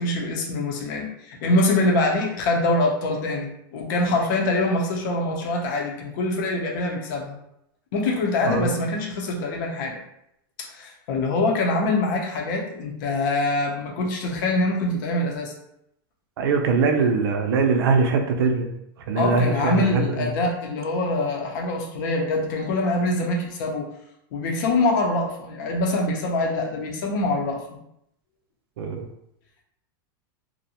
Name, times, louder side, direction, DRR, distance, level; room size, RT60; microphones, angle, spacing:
voice 1, 0.0-7.4 7.9-10.0 10.7-15.5 19.2-23.9 24.3-27.6, left 2 dB, 55° left, 0 dB, 0.7 m, -24 dB
voice 2, 16.4-18.7 19.1-20.3 28.8-29.1, right 4 dB, 80° right, 4 dB, 0.5 m, -22 dB
2.6 x 2.1 x 2.8 m, 0.77 s
supercardioid pair, 160°, 12 cm